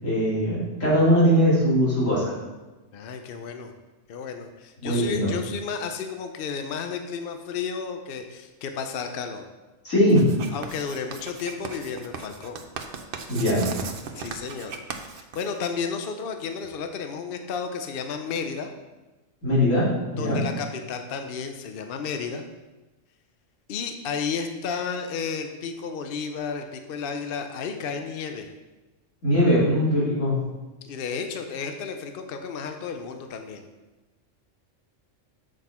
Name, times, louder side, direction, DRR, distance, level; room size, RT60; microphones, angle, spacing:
voice 1, 0.0-2.3 4.8-5.3 9.8-10.2 13.3-13.7 19.4-19.9 20.1-20.4 29.2-30.3, equal, 85° left, -8 dB, 3.2 m, -20 dB
voice 2, 2.9-3.7 4.1-9.4 10.5-12.6 14.1-14.7 15.1-18.7 20.2-22.4 23.7-28.5 30.8-33.6, left 5 dB, 55° left, 6 dB, 0.7 m, -32 dB
Writing, 10.1-15.9, right 5 dB, 55° right, 0.8 m, -37 dB
7.7 x 6.1 x 4.3 m, 1.1 s
omnidirectional pair, 1.3 m